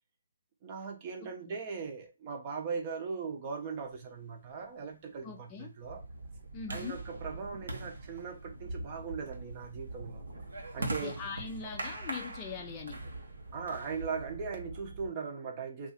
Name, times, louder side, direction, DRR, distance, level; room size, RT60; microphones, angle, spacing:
voice 1, 0.6-6.0 6.7-10.3 10.7-11.2 13.5-15.9, right 5 dB, 30° right, 0.8 m, -39 dB
voice 2, 1.2-1.6 5.2-5.7 6.5-7.0 10.8-13.0, left 6 dB, 20° left, 0.6 m, -42 dB
sound 1, 4.0-14.4, right 2 dB, 85° right, 0.9 m, -44 dB
sound 2, 5.8-15.1, right 2 dB, 55° right, 1.1 m, -46 dB
2.7 x 2.5 x 4.1 m
hypercardioid pair, 155°, 0 cm